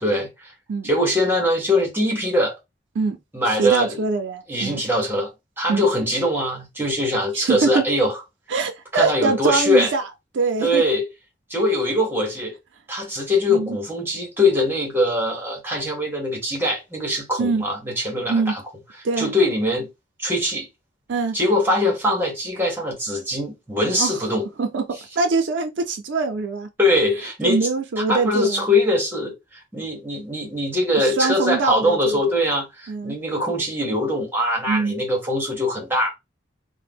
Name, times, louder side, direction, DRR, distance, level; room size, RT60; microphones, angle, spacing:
voice 1, 0.0-0.5 0.8-2.6 3.3-4.0 4.5-5.3 5.6-8.2 8.9-9.9 10.6-11.0 11.5-12.5 12.9-18.6 19.2-19.9 20.2-20.7 21.3-24.5 26.8-27.6 28.0-36.1, left 1 dB, 10° right, 1.0 m, -22 dB
voice 2, 3.5-4.8 5.7-5.9 7.3-7.8 8.5-10.0 10.3-10.8 13.5-13.8 17.4-17.6 18.3-18.5 19.0-19.3 21.1-21.3 24.0-24.2 24.6-24.8 25.2-26.7 27.4-28.6 31.2-32.2 32.9-33.2 34.7-34.9, right 4 dB, 80° right, 0.5 m, -23 dB
2.7 x 2.1 x 3.5 m
head